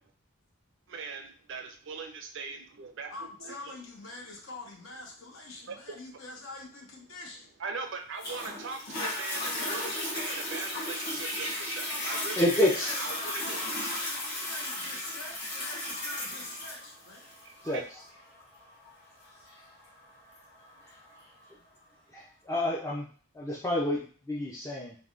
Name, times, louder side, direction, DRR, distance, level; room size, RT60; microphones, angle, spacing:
voice 1, 0.9-3.8 5.7-6.0 7.6-12.6 13.0-13.6 17.4-17.8, right 4 dB, 55° right, 6 dB, 0.4 m, -40 dB
voice 2, 3.1-7.5 11.7-17.3, left 2 dB, 65° left, 0 dB, 0.8 m, -45 dB
Toilet flush, 8.2-21.2 21.8-21.9, left 1 dB, 50° left, 1.2 m, -35 dB
voice 3, 12.0-13.0 17.6-18.0 22.1-23.1 23.3-24.9, left 1 dB, 15° left, -5 dB, 0.3 m, -29 dB
3.4 x 2.1 x 2.4 m, 0.41 s
head